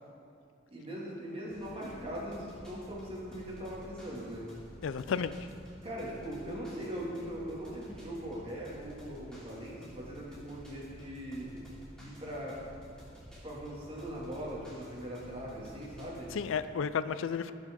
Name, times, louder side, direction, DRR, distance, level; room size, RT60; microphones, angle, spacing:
voice 1, 0.7-4.5 5.8-11.6 12.0-12.6 13.4-16.3, equal, 30° right, -5 dB, 2.4 m, -40 dB
sound 1, 1.5-16.6, equal, 5° left, 2.8 m, -52 dB
voice 2, 4.8-5.4 16.3-17.5, left 6 dB, 90° left, 13 dB, 0.4 m, -32 dB
17.5 x 6.2 x 3.8 m, 2.3 s
head